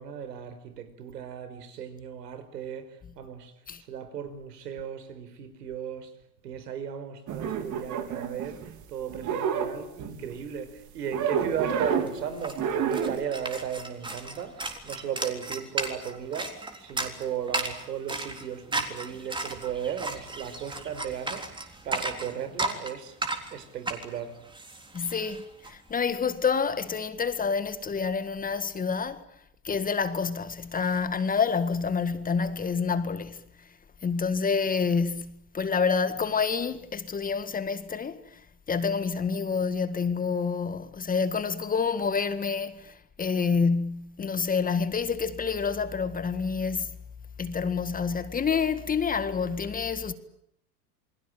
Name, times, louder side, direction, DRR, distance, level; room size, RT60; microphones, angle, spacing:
voice 1, 0.0-3.5 3.8-6.1 6.4-23.2 23.5-24.4, right 8 dB, 90° right, 5.2 m, -36 dB
sound 1, 7.3-8.8 9.1-10.4 11.1-12.2 12.5-13.2, right 7 dB, 40° right, 4.0 m, -29 dB
sound 2, 11.6-11.7 11.8-25.7, right 2 dB, 10° right, 3.7 m, -35 dB
voice 2, 24.9-29.2 29.6-33.4 34.0-38.2 38.7-46.9 47.4-50.1, left 5 dB, 20° left, 1.8 m, -28 dB
28.5 x 21.5 x 8.9 m
supercardioid pair, 125°, 47 cm